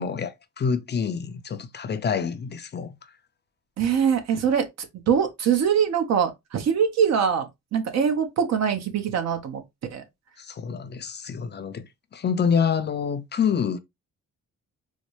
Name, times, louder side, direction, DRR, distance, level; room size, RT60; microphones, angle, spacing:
voice 1, 0.0-2.9 10.4-11.9 12.1-13.8, left 6 dB, 35° left, 0.5 m, -27 dB
voice 2, 3.8-4.6 5.1-9.6 9.9-10.0, right 7 dB, 60° right, 0.9 m, -23 dB
4.1 x 2.1 x 3.1 m
cardioid pair, 90°, 30 cm